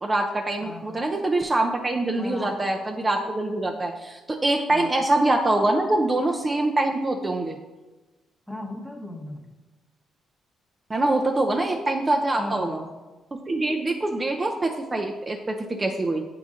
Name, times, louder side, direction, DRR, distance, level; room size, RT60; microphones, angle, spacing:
voice 1, 0.0-7.6 10.9-12.8 13.3-16.2, right 2 dB, 25° right, 2 dB, 0.5 m, -24 dB
voice 2, 0.6-1.0 2.2-2.7 4.7-4.9 8.5-9.5 12.4-12.9, left 1 dB, 5° left, 2 dB, 1.0 m, -36 dB
7.2 x 3.9 x 3.7 m, 1.2 s
cardioid pair, 90°, 0 cm